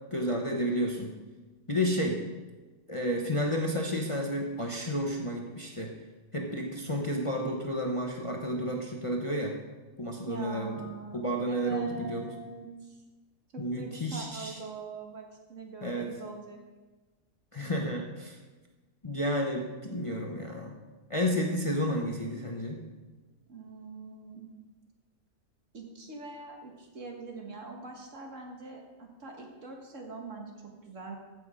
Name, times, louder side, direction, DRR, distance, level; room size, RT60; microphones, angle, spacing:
voice 1, 0.1-1.1 1.7-2.2 2.9-5.9 6.3-9.5 10.0-10.8 11.1-12.3 13.6-14.6 15.8-16.1 17.5-18.4 19.0-20.7 21.1-22.8, equal, 25° left, 0 dB, 0.9 m, -31 dB
voice 2, 10.2-13.0 13.5-16.6 23.5-24.5 25.7-30.5 30.8-31.2, right 3 dB, 55° right, 1 dB, 1.9 m, -42 dB
15.5 x 6.2 x 5.0 m, 1.2 s
omnidirectional pair, 1.6 m